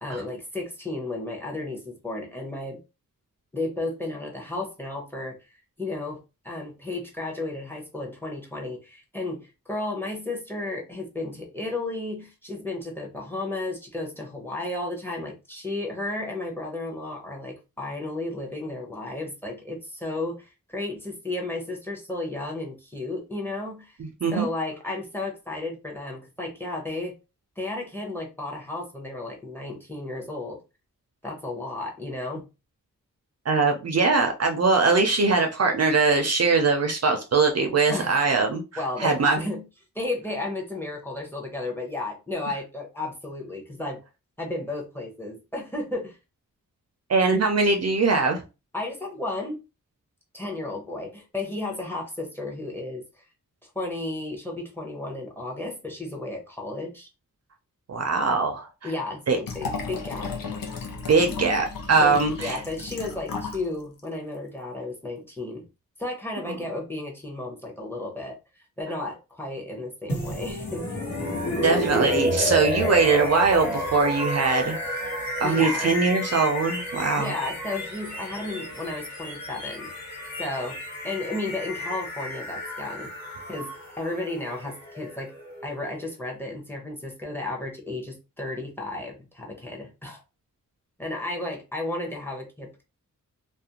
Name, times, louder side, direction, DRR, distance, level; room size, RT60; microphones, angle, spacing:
voice 1, 0.0-2.8 3.5-5.4 5.8-24.0 24.3-27.1 27.6-30.6 31.2-32.5 37.9-38.2 38.8-39.6 39.9-44.0 44.4-46.2 48.7-49.6 50.3-53.2 53.7-57.1 58.8-60.3 62.0-65.7 66.0-70.9 75.4-75.9 77.2-79.9 80.4-80.8 81.0-83.1 83.5-83.7 84.0-85.3 85.6-90.2 91.0-92.8, left 2 dB, 5° left, 0.7 m, -33 dB
voice 2, 24.0-24.5 33.5-38.6 39.0-39.4 47.1-48.4 57.9-58.7 59.3-59.4 61.1-62.6 71.6-74.8 75.4-77.3, right 4 dB, 50° right, 0.4 m, -22 dB
Liquid, 59.4-63.7 64.0-64.1, left 4 dB, 80° left, 0.6 m, -34 dB
sound 1, 70.1-86.0, equal, 55° left, 1.2 m, -31 dB
2.4 x 2.1 x 2.8 m
wide cardioid pair, 130°, 34 cm